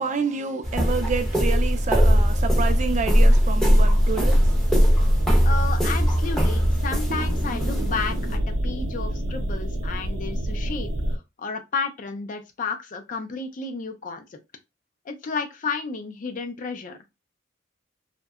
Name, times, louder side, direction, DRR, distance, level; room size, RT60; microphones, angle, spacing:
voice 1, 0.0-4.8, right 5 dB, 40° right, 0.4 m, -29 dB
sound 1, 0.6-8.4, equal, ahead, 0.6 m, -20 dB
sound 2, 1.3-11.2, equal, 90° right, 0.6 m, -28 dB
voice 2, 5.4-14.4 15.1-17.0, left 4 dB, 45° left, 0.4 m, -32 dB
2.7 x 2.1 x 2.3 m
head